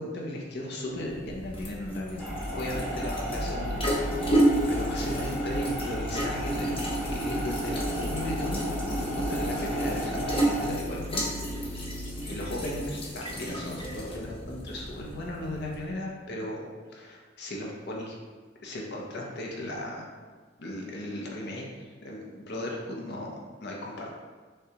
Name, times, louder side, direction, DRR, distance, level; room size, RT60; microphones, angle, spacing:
voice 1, 0.0-2.2 2.5-11.3 11.6-18.1 18.6-20.1 20.6-24.1, left 1 dB, 65° left, -2 dB, 0.7 m, -36 dB
sound 1, 0.9-15.9, right 1 dB, 30° left, 0.7 m, -32 dB
sound 2, 2.2-10.7, equal, ahead, 1.1 m, -34 dB
sound 3, 3.3-12.9, equal, 70° right, 0.5 m, -39 dB
6.5 x 2.3 x 2.9 m, 1.4 s
head